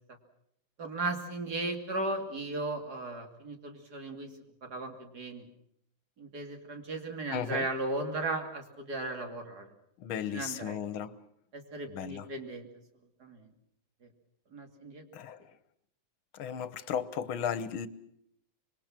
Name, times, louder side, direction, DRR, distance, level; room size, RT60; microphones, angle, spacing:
voice 1, 0.8-4.3 4.6-5.5 6.2-9.7 10.3-10.8 11.5-12.7 13.2-13.5 14.5-15.0, right 2 dB, 50° right, 3.3 m, -36 dB
voice 2, 7.3-7.7 10.0-11.2 11.9-12.3 15.1-15.4 16.3-17.9, left 8 dB, 80° left, 1.9 m, -35 dB
26.0 x 22.5 x 6.0 m
omnidirectional pair, 2.2 m